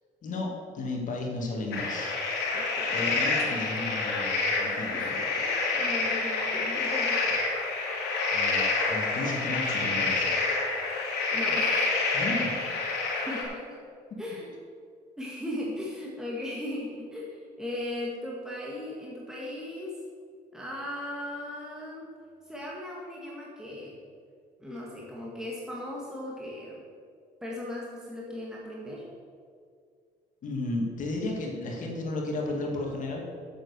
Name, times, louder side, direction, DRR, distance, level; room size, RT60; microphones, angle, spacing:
voice 1, 0.2-2.2 2.9-5.2 8.3-10.4 12.1-12.6 30.4-33.3, left 2 dB, 50° left, 0 dB, 2.1 m, -33 dB
sound 1, 1.7-13.4, left 3 dB, 85° left, 2.5 m, -28 dB
voice 2, 2.5-3.0 4.8-7.2 11.3-12.0 13.2-13.8 14.2-14.5 15.2-20.0 20.5-22.1 22.5-23.9 24.6-26.8 27.4-29.1, left 1 dB, 5° right, -4 dB, 1.8 m, -37 dB
7.8 x 7.7 x 6.6 m, 2.1 s
cardioid pair, 110°, 17 cm